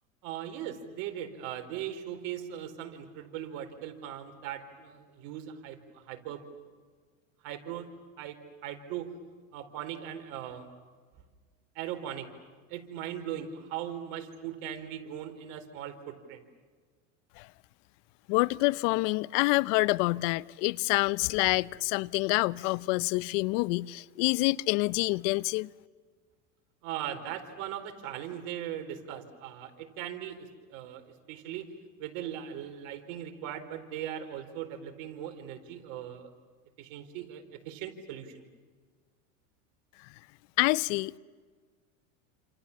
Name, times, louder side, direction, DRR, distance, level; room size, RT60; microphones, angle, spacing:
voice 1, 0.2-6.4 7.4-7.9 8.2-9.2 9.5-10.7 11.7-12.3 12.7-16.4 26.8-31.7 32.0-36.3 36.8-38.5, right 10 dB, 65° right, 4.4 m, -39 dB
voice 2, 18.3-25.7 40.6-41.2, left 23 dB, 65° left, 0.8 m, -27 dB
29.5 x 28.0 x 7.3 m
supercardioid pair, 105°, 40 cm